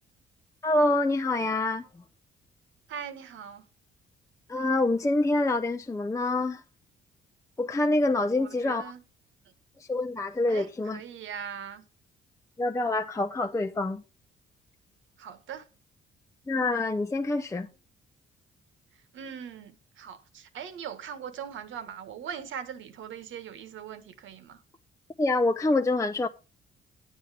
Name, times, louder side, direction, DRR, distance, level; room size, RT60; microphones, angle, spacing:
voice 1, 0.6-1.9 4.5-6.6 7.6-8.9 9.9-11.0 12.6-14.0 16.5-17.7 25.2-26.3, left 2 dB, 15° left, 0.6 m, -26 dB
voice 2, 2.9-3.6 8.3-9.0 10.5-11.8 15.2-15.7 19.1-24.6, right 8 dB, 75° right, 1.5 m, -40 dB
9.8 x 8.1 x 4.9 m
cardioid pair, 90°, 20 cm